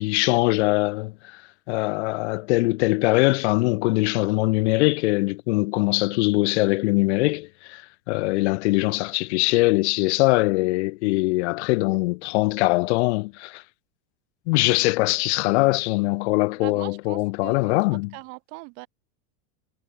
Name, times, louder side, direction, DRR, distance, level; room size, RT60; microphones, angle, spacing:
voice 1, 0.0-1.4 1.7-13.6 14.5-18.1, left 24 dB, 50° left, 0.5 m, -22 dB
voice 2, 16.6-17.7 18.1-18.9, right 31 dB, 35° right, 0.6 m, -40 dB
supercardioid pair, 160°, 44 cm